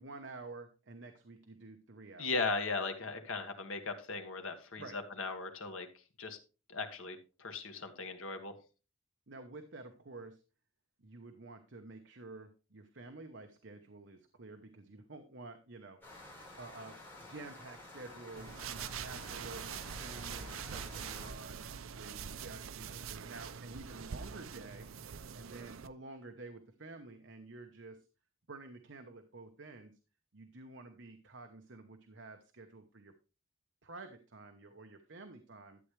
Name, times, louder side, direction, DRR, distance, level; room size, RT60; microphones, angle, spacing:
voice 1, 0.0-2.3 4.8-5.0 9.3-10.4 11.0-16.0 16.6-21.6 21.9-24.9 25.3-28.1 28.5-29.9 30.3-33.1 33.8-35.8, right 3 dB, 60° right, 6 dB, 1.0 m, -50 dB
voice 2, 2.2-5.9 6.2-6.4 6.7-8.5, left 3 dB, 85° left, 6 dB, 1.6 m, -38 dB
sound 1, 16.0-21.3, left 1 dB, 10° left, 4.5 m, -51 dB
sound 2, 18.4-25.9, right 7 dB, 85° right, 0.5 m, -44 dB
12.0 x 8.1 x 3.3 m, 0.33 s
head